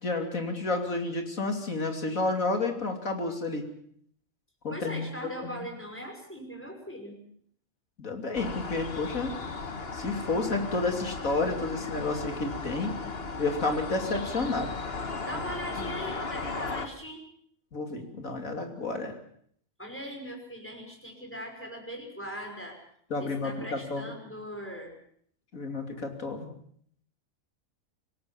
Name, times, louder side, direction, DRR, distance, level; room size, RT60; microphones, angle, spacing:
voice 1, 0.0-3.7 4.6-5.7 8.0-9.3 9.9-12.9 13.4-14.7 15.8-15.9 17.7-19.2 23.1-24.0 25.5-26.5, left 3 dB, 75° left, 4 dB, 3.4 m, -31 dB
voice 2, 4.7-7.2 15.2-17.2 19.8-22.8 23.2-24.9, equal, 10° left, 2 dB, 5.8 m, -40 dB
sound 1, 8.3-16.9, left 4 dB, 45° left, 1.8 m, -36 dB
26.0 x 17.0 x 7.2 m, 0.64 s
omnidirectional pair, 1.4 m